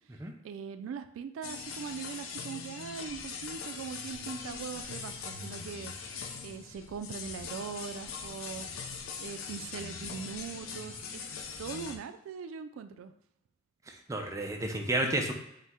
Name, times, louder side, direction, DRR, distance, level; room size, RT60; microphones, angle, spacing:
voice 1, 0.4-6.2 6.4-8.9 9.2-11.3 11.6-13.1, right 6 dB, 80° right, 9 dB, 0.3 m, -41 dB
sound 1, 1.4-12.0, left 5 dB, 85° left, 0.6 m, -41 dB
voice 2, 13.9-15.3, right 1 dB, 15° right, 2 dB, 0.5 m, -31 dB
5.3 x 2.1 x 3.6 m, 0.83 s
head